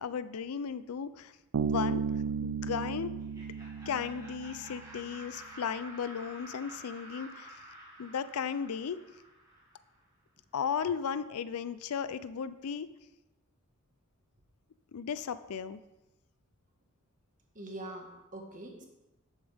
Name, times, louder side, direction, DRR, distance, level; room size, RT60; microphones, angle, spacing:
voice 1, 0.0-1.3 1.6-2.0 2.4-3.1 3.9-7.5 8.0-9.0 10.5-12.9 14.9-15.8, left 7 dB, 80° left, 14 dB, 0.4 m, -35 dB
Bass guitar, 1.5-5.0, right 6 dB, 85° right, 0.4 m, -34 dB
Laughter, 3.2-10.0, right 1 dB, 15° right, 2.0 m, -50 dB
voice 2, 17.5-18.9, right 1 dB, 35° right, 1 dB, 1.5 m, -43 dB
11.0 x 7.2 x 3.5 m, 0.99 s
head